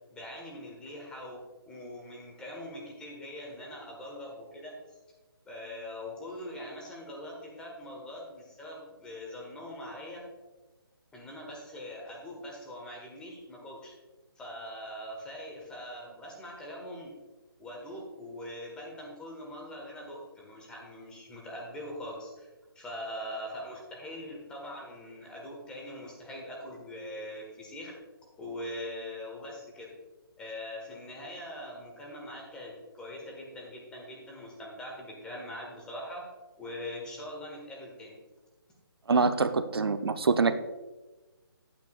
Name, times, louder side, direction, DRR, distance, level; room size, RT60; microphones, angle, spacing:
voice 1, 0.1-1.4 1.7-5.0 5.4-10.2 11.1-13.9 14.3-17.1 17.6-22.5 22.7-27.9 28.4-29.9 30.4-36.2 36.6-38.1, left 1 dB, 5° left, -2 dB, 1.4 m, -42 dB
voice 2, 39.1-40.6, right 4 dB, 80° right, 10 dB, 0.6 m, -25 dB
10.0 x 8.9 x 2.4 m, 1.2 s
hypercardioid pair, 155°, 12 cm